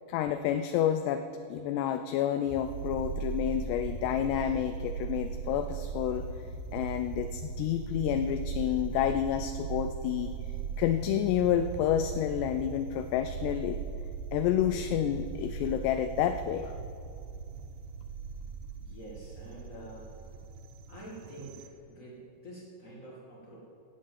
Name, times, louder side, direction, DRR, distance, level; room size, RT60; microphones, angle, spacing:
voice 1, 0.1-6.3 6.7-10.3 10.8-13.8 14.3-16.7, left 10 dB, 85° left, 9 dB, 2.5 m, -29 dB
sound 1, 2.5-21.7, right 6 dB, 85° right, 2.0 m, -38 dB
voice 2, 18.8-20.1 20.9-23.6, right 1 dB, 55° left, -4 dB, 0.8 m, -47 dB
15.0 x 8.7 x 7.5 m, 2.6 s
omnidirectional pair, 5.2 m